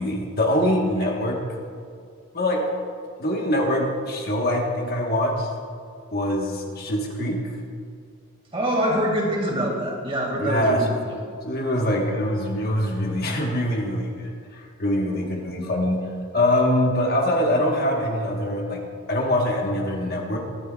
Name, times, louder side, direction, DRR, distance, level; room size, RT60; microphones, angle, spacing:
voice 1, 0.0-1.4 2.3-2.7 3.2-5.5 6.1-7.5 10.4-11.0 11.4-18.8 19.1-20.4, left 1 dB, 45° left, 0 dB, 1.2 m, -24 dB
voice 2, 8.5-11.1, equal, 25° right, -1 dB, 2.0 m, -24 dB
22.5 x 9.7 x 2.3 m, 2.3 s
head